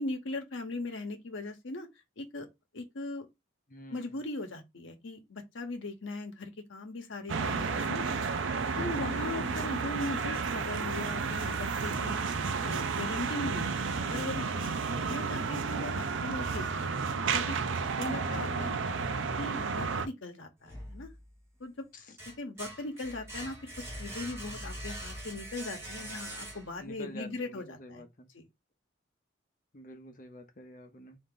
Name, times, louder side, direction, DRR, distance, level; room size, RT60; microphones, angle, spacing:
voice 1, 0.0-1.9 2.2-2.5 2.7-3.3 3.9-8.0 8.8-12.2 12.6-13.7 14.1-14.8 15.1-17.6 18.0-18.7 19.4-21.1 21.6-21.9 22.4-28.0 28.3-28.5, left 2 dB, 75° left, 0.9 m, -39 dB
voice 2, 3.7-4.2 8.8-9.8 18.1-19.0 21.9-22.2 26.8-28.3 29.7-31.2, equal, 40° left, 0.7 m, -47 dB
sound 1, 7.3-20.1, right 5 dB, 75° right, 0.5 m, -32 dB
sound 2, 20.6-21.5 21.9-26.9, right 1 dB, 15° right, 1.3 m, -43 dB
3.7 x 2.7 x 3.8 m
head